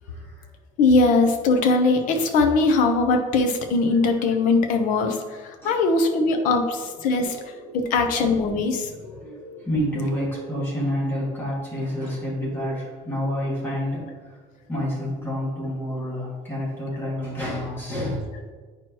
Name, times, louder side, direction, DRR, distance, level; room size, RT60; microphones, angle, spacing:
voice 1, 0.0-0.5 5.6-5.8 6.2-6.5 7.0-8.1 9.0-14.3 14.7-18.2, equal, 15° left, -6 dB, 2.0 m, -29 dB
voice 2, 0.8-7.4 7.7-8.9, left 3 dB, 60° left, 5 dB, 0.8 m, -21 dB
9.2 x 4.6 x 3.0 m, 1.4 s
cardioid pair, 170°, 15 cm